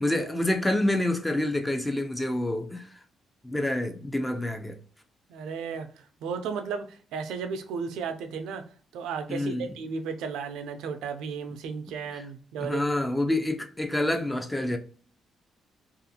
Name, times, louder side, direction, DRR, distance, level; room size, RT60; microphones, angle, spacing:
voice 1, 0.0-2.9 3.4-4.8 9.3-9.7 12.1-12.2 12.6-14.8, left 1 dB, 10° left, 0.4 m, -27 dB
voice 2, 5.3-5.9 6.2-8.6 8.9-12.9, right 5 dB, 90° right, 0.3 m, -34 dB
2.4 x 2.4 x 2.7 m
cardioid pair, 90°, 0 cm